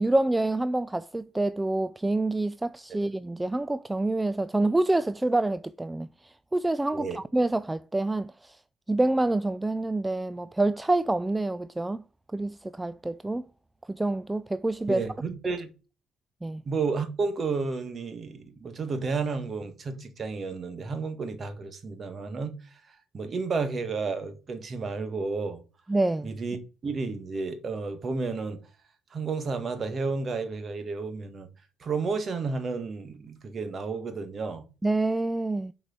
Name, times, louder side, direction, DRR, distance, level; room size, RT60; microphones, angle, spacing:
voice 1, 0.0-8.6 8.9-12.0 12.3-13.4 13.9-15.0 16.4-16.6 25.9-26.3 34.8-35.7, right 2 dB, 10° right, 0.4 m, -27 dB
voice 2, 14.9-15.7 16.6-25.6 26.2-26.6 26.8-28.6 29.1-31.5 31.8-34.7, right 4 dB, 40° right, 1.7 m, -32 dB
6.6 x 4.8 x 6.1 m
supercardioid pair, 80°, 0 cm